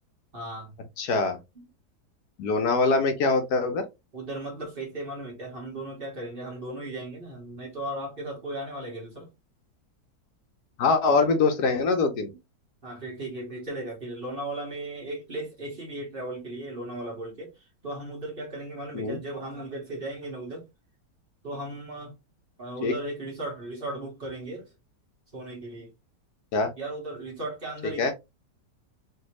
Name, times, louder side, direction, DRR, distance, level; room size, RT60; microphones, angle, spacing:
voice 1, 0.3-0.7 1.6-1.7 2.8-2.9 4.1-9.3 11.1-11.3 12.8-20.6 21.4-22.1 22.6-24.7 25.3-25.9 26.8-28.1, right 1 dB, 35° right, 1.2 m, -36 dB
voice 2, 1.0-1.4 2.4-3.8 10.8-12.3 18.9-19.2 22.8-22.9 26.5-26.7 28.0-28.1, left 3 dB, 70° left, 1.2 m, -23 dB
3.4 x 2.7 x 3.0 m
omnidirectional pair, 1.9 m